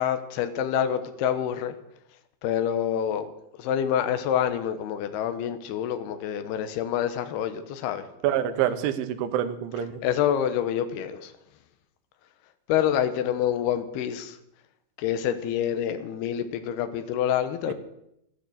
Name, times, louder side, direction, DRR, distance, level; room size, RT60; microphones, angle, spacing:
voice 1, 0.0-1.7 2.4-3.3 3.6-8.0 10.0-11.3 12.7-14.4 15.0-17.7, left 9 dB, 70° left, 2.8 m, -27 dB
voice 2, 8.2-10.0, right 10 dB, 85° right, 3.4 m, -26 dB
13.0 x 11.5 x 8.0 m
omnidirectional pair, 5.3 m